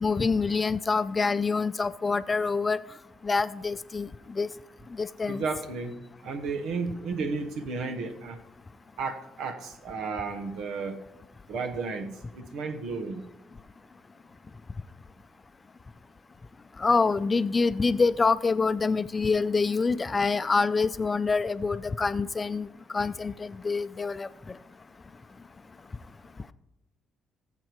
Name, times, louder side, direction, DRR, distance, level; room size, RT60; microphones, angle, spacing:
voice 1, 0.0-2.8 3.2-4.1 4.4-4.5 5.0-5.4 16.8-22.7 22.9-23.3 23.6-24.3, left 4 dB, 30° left, 14 dB, 0.5 m, -26 dB
voice 2, 5.3-5.9 6.2-8.4 9.0-11.0 11.5-13.2, right 4 dB, 80° right, 7 dB, 1.2 m, -33 dB
19.5 x 7.6 x 3.1 m, 0.94 s
cardioid pair, 80°, 0 cm